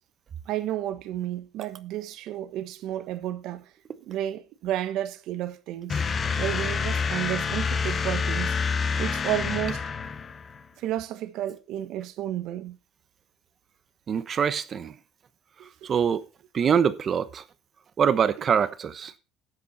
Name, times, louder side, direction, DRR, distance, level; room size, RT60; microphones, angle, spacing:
voice 1, 0.5-3.6 4.0-6.0 6.4-8.6 9.0-9.8 10.8-12.8 15.6-15.9, right 12 dB, 70° right, 1.2 m, -32 dB
sound 1, 5.9-10.6, left 5 dB, 35° left, 1.1 m, -27 dB
voice 2, 14.1-14.9 15.8-16.2 16.5-17.4 18.0-19.1, right 7 dB, 40° right, 1.0 m, -24 dB
12.0 x 8.3 x 4.2 m
cardioid pair, 110°, 0 cm